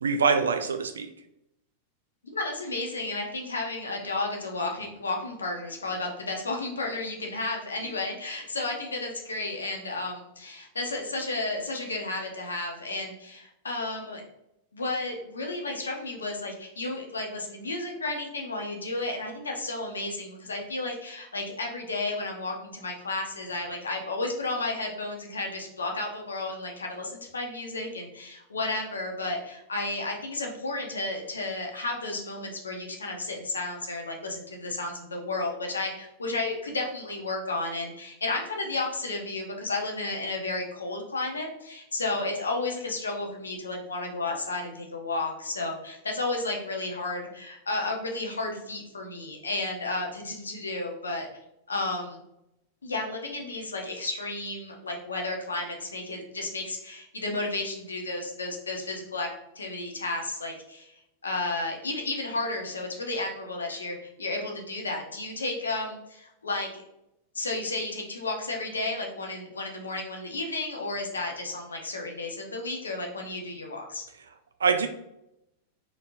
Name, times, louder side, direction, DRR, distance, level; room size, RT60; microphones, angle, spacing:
voice 1, 0.0-1.1 74.6-74.9, right 5 dB, 70° right, 8 dB, 0.3 m, -24 dB
voice 2, 2.3-14.2 14.7-51.3 51.7-52.2 52.8-59.3 59.5-60.9 61.2-66.8 67.3-74.0, left 2 dB, 75° left, 1 dB, 0.8 m, -32 dB
4.3 x 3.5 x 2.6 m, 0.83 s
figure-of-eight pair, 90°, 0 cm